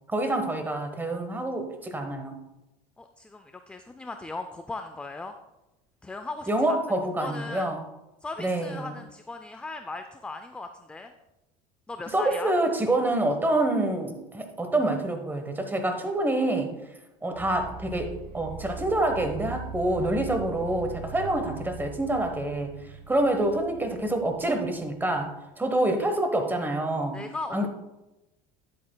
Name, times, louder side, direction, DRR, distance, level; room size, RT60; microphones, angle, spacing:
voice 1, 0.1-2.4 6.5-7.8 8.4-8.9 12.1-16.8 17.2-22.7 23.1-27.2 27.5-27.7, right 1 dB, 10° right, 6 dB, 1.1 m, -27 dB
voice 2, 3.0-5.4 6.0-6.8 7.2-7.7 8.2-11.1 11.9-12.5 27.1-27.7, left 3 dB, 5° left, 7 dB, 0.4 m, -38 dB
sound 1, 17.3-25.2, right 5 dB, 60° right, 1.5 m, -41 dB
10.0 x 8.4 x 2.2 m, 0.98 s
supercardioid pair, 120°, 18 cm